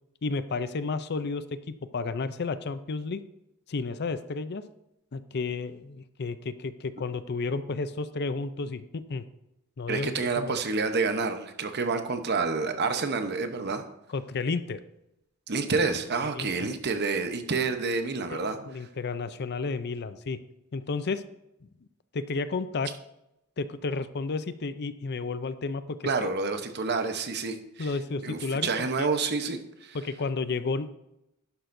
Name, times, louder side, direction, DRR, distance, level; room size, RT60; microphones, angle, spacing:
voice 1, 0.2-3.2 3.7-4.6 5.1-9.2 9.8-10.6 14.1-14.8 16.3-16.7 18.3-20.4 20.7-21.2 22.1-22.9 23.6-26.3 27.8-29.1 29.9-31.0, left 4 dB, 50° left, 13 dB, 0.5 m, -32 dB
voice 2, 9.9-13.8 15.5-18.6 26.0-27.9 28.2-30.0, right 4 dB, 50° right, 7 dB, 0.9 m, -28 dB
11.5 x 10.0 x 2.7 m, 0.86 s
head